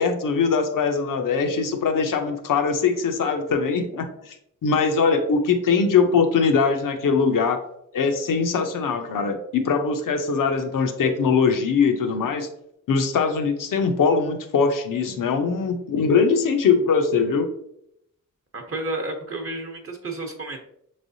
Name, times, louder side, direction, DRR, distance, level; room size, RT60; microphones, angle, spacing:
voice 1, 0.0-4.4 4.6-7.6 7.9-12.5 12.9-17.5, left 5 dB, 80° left, 6 dB, 0.7 m, -21 dB
voice 2, 18.5-20.6, right 2 dB, 45° right, 2 dB, 0.8 m, -31 dB
6.0 x 3.3 x 2.6 m, 0.75 s
cardioid pair, 80°, 32 cm